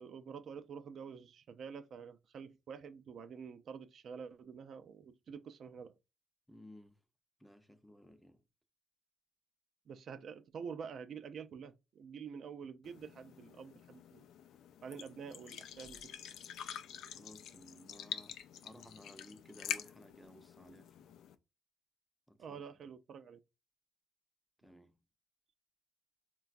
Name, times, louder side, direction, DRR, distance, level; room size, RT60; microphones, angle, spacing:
voice 1, 0.0-5.9 9.9-14.3 14.8-16.1 22.4-23.4, right 6 dB, 60° right, 0.3 m, -48 dB
voice 2, 6.5-7.0 7.4-8.4 17.1-21.1 22.3-22.6 24.6-24.9, left 1 dB, 5° left, 0.5 m, -57 dB
sound 1, 12.8-21.3, left 9 dB, 80° left, 0.3 m, -47 dB
3.8 x 2.2 x 2.4 m
cardioid pair, 90°, 0 cm